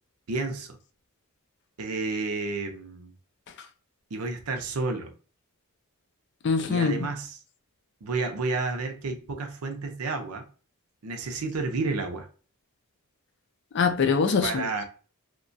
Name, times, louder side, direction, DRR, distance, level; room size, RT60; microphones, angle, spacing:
voice 1, 0.3-0.8 1.8-3.1 4.1-5.1 6.7-7.4 8.0-10.5 11.0-12.3 14.4-14.8, right 3 dB, 80° right, 0.6 m, -31 dB
voice 2, 6.4-7.0 13.7-14.8, left 5 dB, 55° left, 0.4 m, -24 dB
2.9 x 2.2 x 2.6 m
head